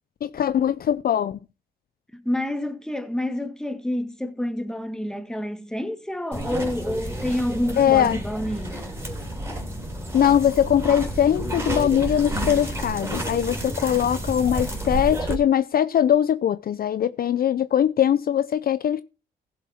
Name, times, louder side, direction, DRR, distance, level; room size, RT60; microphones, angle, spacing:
voice 1, 0.2-1.4 7.8-8.2 10.1-19.0, left 9 dB, 50° left, 0.5 m, -21 dB
voice 2, 2.1-9.0, left 1 dB, 5° left, 1.8 m, -28 dB
sound 1, 6.3-15.4, right 1 dB, 15° right, 3.6 m, -30 dB
15.5 x 7.3 x 4.3 m
cardioid pair, 90°, 20 cm